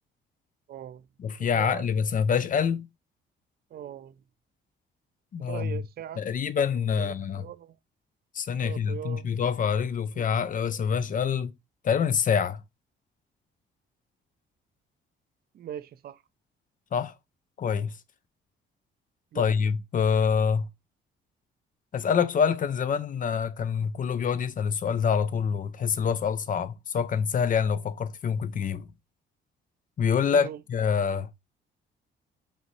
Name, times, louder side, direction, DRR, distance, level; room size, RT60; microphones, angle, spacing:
voice 1, 0.7-1.0 1.5-2.0 3.7-4.2 5.5-6.2 7.0-7.7 8.6-9.3 10.2-10.3 15.5-16.2 19.3-19.5 30.3-30.6, right 11 dB, 50° right, 0.4 m, -40 dB
voice 2, 1.2-2.9 5.3-5.8 6.2-7.5 8.3-11.5 11.8-12.6 16.9-17.1 17.6-18.0 19.3-20.7 21.9-28.9 30.0-31.3, left 7 dB, 40° left, 0.5 m, -26 dB
5.2 x 2.7 x 3.1 m
cardioid pair, 90°, 20 cm